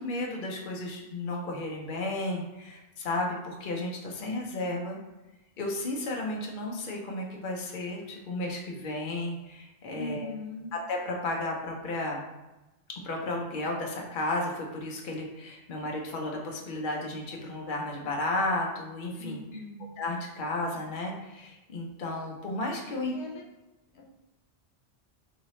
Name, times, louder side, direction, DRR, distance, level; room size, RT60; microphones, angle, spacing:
voice 1, 0.0-5.0 5.6-10.3 10.9-12.2 13.0-19.4 20.0-23.1, left 2 dB, 55° left, 0 dB, 0.8 m, -33 dB
voice 2, 9.9-10.7 19.2-19.8 23.1-23.4 23.9-24.1, left 2 dB, 90° left, 0 dB, 1.0 m, -39 dB
4.0 x 2.8 x 3.0 m, 1.0 s
omnidirectional pair, 1.1 m